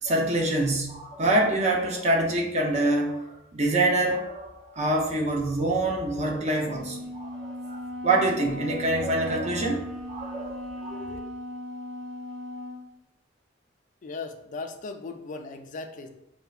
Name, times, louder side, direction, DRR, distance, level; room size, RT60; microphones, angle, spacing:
voice 1, 0.0-3.2 3.5-9.8 10.1-11.2, right 2 dB, 35° right, 0 dB, 0.5 m, -26 dB
Wind instrument woodwind instrument, 6.6-12.9, left 1 dB, 85° right, 0.9 m, -37 dB
voice 2, 14.0-16.1, left 3 dB, 40° left, 6 dB, 0.3 m, -37 dB
4.4 x 2.1 x 2.3 m, 0.87 s
head